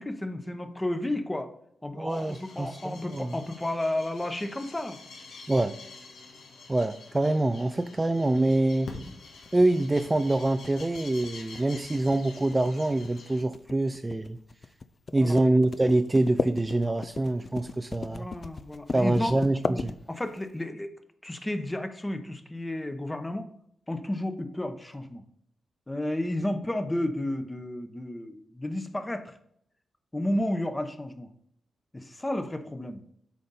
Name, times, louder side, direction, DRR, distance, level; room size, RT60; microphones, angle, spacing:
voice 1, 0.0-1.5 1.8-5.0 9.1-9.2 15.2-15.4 18.1-19.3 20.1-20.9 21.2-23.5 23.9-25.2 25.9-29.4 30.1-31.3 31.9-33.0, left 1 dB, 15° left, 8 dB, 0.9 m, -32 dB
voice 2, 2.0-3.3 5.5-5.8 6.7-8.9 9.5-14.4 15.1-18.3 18.9-19.9, right 2 dB, 20° right, 9 dB, 0.4 m, -25 dB
sound 1, 2.1-13.4, left 3 dB, 85° left, 1.6 m, -47 dB
sound 2, 9.4-20.5, left 4 dB, 40° left, 0.4 m, -36 dB
8.5 x 5.2 x 4.2 m, 0.70 s
cardioid pair, 90°, 0 cm